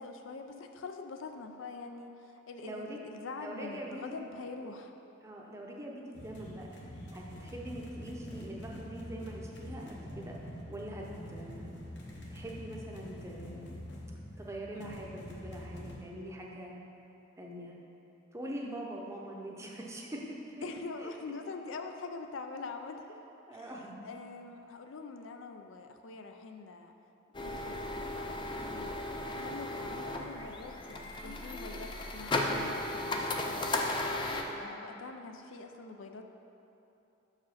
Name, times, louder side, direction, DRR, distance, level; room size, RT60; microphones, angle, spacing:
voice 1, 0.0-4.9 14.7-15.0 18.6-18.8 20.6-23.2 23.5-23.7 24.0-26.9 27.4-34.0 34.6-36.3, left 3 dB, 80° left, 5 dB, 0.5 m, -44 dB
voice 2, 2.6-3.0 3.4-4.3 4.6-4.7 5.2-6.7 7.1-10.3 10.7-11.8 12.3-13.8 14.4-16.8 17.4-17.7 18.3-20.4 21.0-21.1 23.5-24.0 34.4-34.8, right 1 dB, 15° right, -2 dB, 0.7 m, -43 dB
sound 1, 6.1-16.0, equal, 60° left, 0.9 m, -45 dB
sound 2, 27.3-34.4, left 2 dB, 25° left, 0.4 m, -35 dB
6.3 x 4.9 x 5.7 m, 2.9 s
head